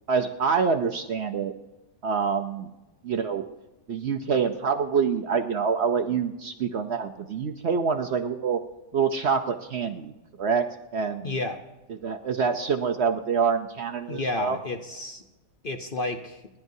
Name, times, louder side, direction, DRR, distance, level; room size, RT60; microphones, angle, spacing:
voice 1, 0.1-1.5 2.0-2.7 3.0-3.5 3.9-8.6 8.9-10.7 10.9-11.3 12.0-14.6, right 6 dB, 55° right, 6 dB, 0.8 m, -26 dB
voice 2, 11.2-11.6 14.1-15.2 15.6-16.4, left 2 dB, 45° left, 5 dB, 0.8 m, -31 dB
29.0 x 11.0 x 2.7 m, 1.0 s
omnidirectional pair, 1.6 m